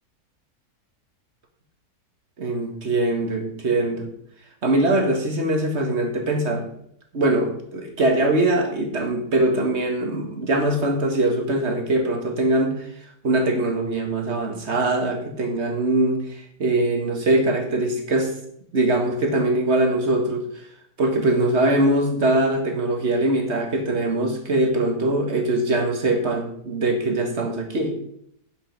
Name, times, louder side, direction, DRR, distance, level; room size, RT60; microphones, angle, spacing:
voice 1, 2.4-4.1 4.6-6.6 7.1-12.9 13.2-18.3 18.7-20.5 21.0-28.0, right 2 dB, 45° right, 3 dB, 2.0 m, -22 dB
11.0 x 5.6 x 5.4 m, 0.70 s
omnidirectional pair, 1.7 m